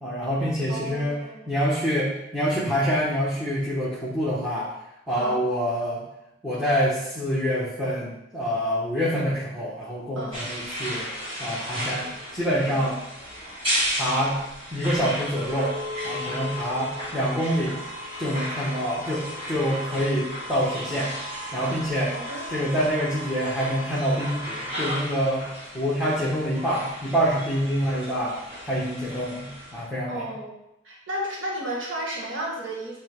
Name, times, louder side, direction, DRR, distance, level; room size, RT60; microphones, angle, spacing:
voice 1, 0.0-1.2 1.5-4.7 5.1-6.0 6.4-11.1 11.4-13.0 14.0-14.4 14.7-15.7 16.0-17.8 18.2-21.1 21.5-22.1 22.5-25.5 25.7-28.3 28.6-30.3, equal, 5° right, -9 dB, 1.0 m, -26 dB
voice 2, 0.7-1.5 5.2-5.4 10.1-10.3 12.7-12.8 20.0-20.1 22.1-22.7 30.1-30.5 30.8-33.0, right 1 dB, 80° right, -4 dB, 1.5 m, -33 dB
sound 1, 10.3-29.9, equal, 30° right, 1.9 m, -34 dB
8.5 x 3.3 x 3.5 m, 0.88 s
head